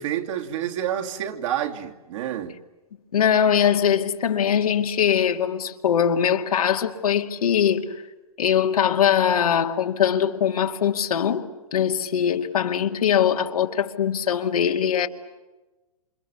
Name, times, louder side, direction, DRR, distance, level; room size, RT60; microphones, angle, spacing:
voice 1, 0.0-2.6, right 10 dB, 55° right, 2.9 m, -28 dB
voice 2, 3.1-8.0 8.4-15.1, left 8 dB, 80° left, 2.4 m, -22 dB
28.5 x 26.5 x 7.1 m
hypercardioid pair, 130°, 19 cm